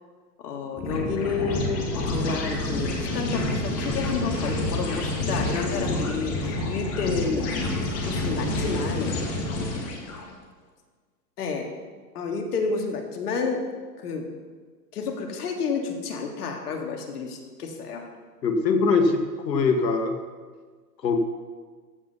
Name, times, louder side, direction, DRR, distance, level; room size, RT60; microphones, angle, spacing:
voice 1, 0.4-7.5 8.1-9.1 11.4-11.7 12.1-13.7 14.0-14.3 14.9-18.1, left 4 dB, 65° left, 3 dB, 2.1 m, -30 dB
sound 1, 0.8-10.2, left 2 dB, 30° left, 2.1 m, -28 dB
voice 2, 18.4-20.1 21.0-21.2, left 4 dB, 90° left, 5 dB, 1.7 m, -22 dB
14.5 x 5.4 x 5.5 m, 1.5 s
hypercardioid pair, 140°, 49 cm